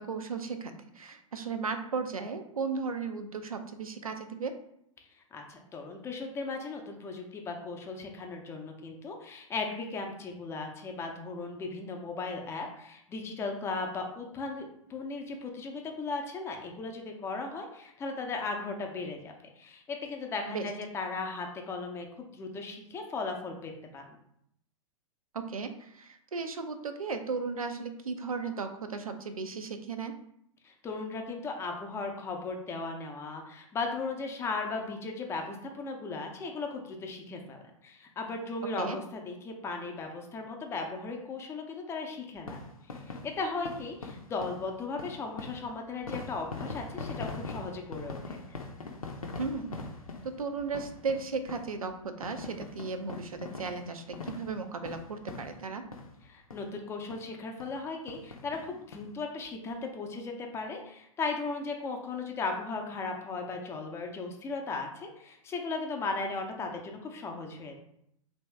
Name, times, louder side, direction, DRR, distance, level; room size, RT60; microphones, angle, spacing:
voice 1, 0.0-4.5 20.5-20.7 25.3-30.1 38.8-39.0 49.4-49.8 50.2-55.8, right 4 dB, 85° right, 7 dB, 0.5 m, -35 dB
voice 2, 5.3-24.2 30.6-42.6 42.9-48.4 56.3-67.8, left 3 dB, 15° left, 2 dB, 0.5 m, -37 dB
sound 1, 42.4-56.2 56.5-56.7 57.1-57.2 57.6-57.8 58.1-59.0 59.4-59.5 59.7-59.8, left 3 dB, 85° left, 0.6 m, -42 dB
2.9 x 2.7 x 3.3 m, 0.73 s
figure-of-eight pair, 105°, 18 cm